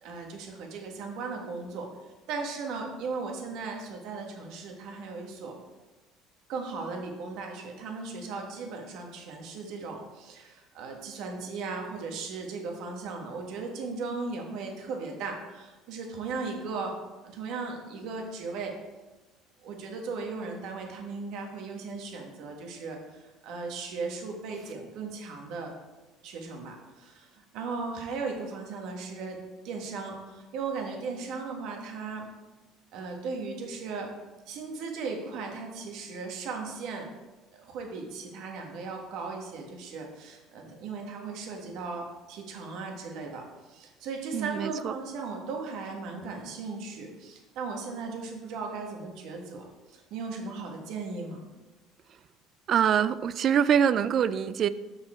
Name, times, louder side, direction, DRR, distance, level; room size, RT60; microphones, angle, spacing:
voice 1, 0.0-5.5 6.5-17.0 17.2-18.8 19.6-25.7 26.2-32.3 32.9-34.1 34.5-37.1 37.6-51.4, right 4 dB, 70° right, 2 dB, 1.5 m, -37 dB
voice 2, 44.3-44.9 52.7-54.7, right 8 dB, 50° right, 15 dB, 0.4 m, -24 dB
6.7 x 5.6 x 4.4 m, 1.1 s
supercardioid pair, 100°, 0 cm